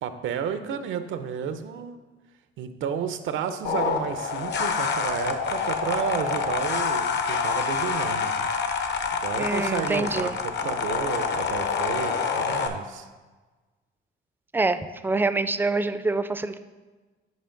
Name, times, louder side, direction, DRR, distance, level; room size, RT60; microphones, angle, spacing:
voice 1, 0.0-2.0 2.6-8.5 9.1-13.1, right 7 dB, 80° right, 10 dB, 0.6 m, -32 dB
sound 1, 3.6-12.7, left 5 dB, 60° left, 0.8 m, -27 dB
voice 2, 9.4-10.4 14.5-14.8 15.0-16.6, right 3 dB, 10° right, 11 dB, 0.4 m, -25 dB
9.4 x 5.1 x 3.8 m, 1.3 s
cardioid pair, 90°, 20 cm